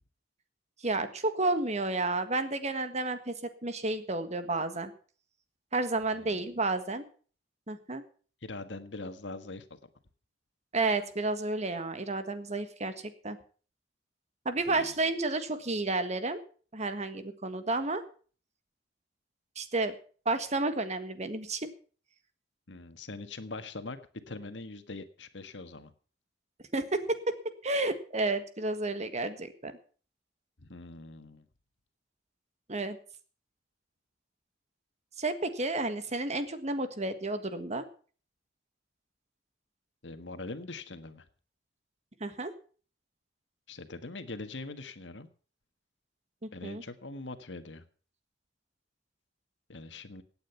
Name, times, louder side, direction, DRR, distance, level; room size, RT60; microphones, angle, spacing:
voice 1, 0.8-4.9 5.7-7.0 7.7-8.0 10.7-13.4 14.4-16.4 16.7-18.0 19.5-19.9 20.2-21.7 26.7-29.7 32.7-33.0 35.2-37.9 42.2-42.5 46.4-46.8, right 2 dB, 40° right, 10 dB, 1.6 m, -31 dB
voice 2, 8.4-9.6 14.7-14.9 22.7-24.0 24.3-25.9 30.6-31.4 40.0-41.2 43.7-45.3 46.5-47.8 49.7-50.2, left 2 dB, 80° left, 10 dB, 1.6 m, -42 dB
17.0 x 9.0 x 5.9 m, 0.41 s
head